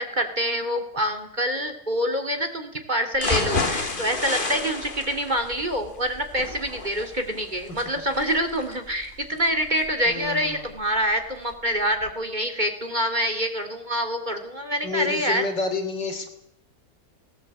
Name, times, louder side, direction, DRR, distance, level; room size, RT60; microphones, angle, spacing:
voice 1, 0.0-15.4, equal, 25° right, 6 dB, 2.7 m, -26 dB
sound 1, 3.1-11.1 11.5-11.6 12.0-12.1, left 3 dB, 30° left, 1.9 m, -31 dB
voice 2, 10.1-10.6 14.8-16.3, left 4 dB, 80° left, 6 dB, 3.9 m, -29 dB
19.0 x 18.5 x 8.7 m, 0.75 s
omnidirectional pair, 1.9 m